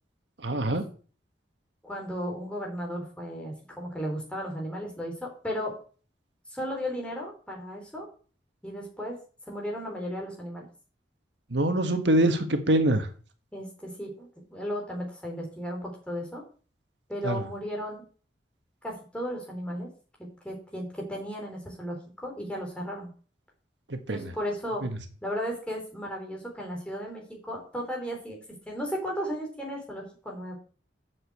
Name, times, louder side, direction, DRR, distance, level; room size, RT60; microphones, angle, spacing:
voice 1, 0.4-0.8 11.5-13.1 17.2-17.4 23.9-24.3, right 1 dB, 75° right, 7 dB, 1.5 m, -24 dB
voice 2, 1.8-5.7 6.5-8.1 8.6-9.2 9.5-10.7 13.5-16.4 17.1-18.0 18.8-19.9 20.2-22.0 22.2-23.1 24.1-24.8 25.2-28.4 28.7-30.5, equal, 5° left, -1 dB, 4.1 m, -35 dB
7.9 x 7.4 x 8.1 m, 0.40 s
head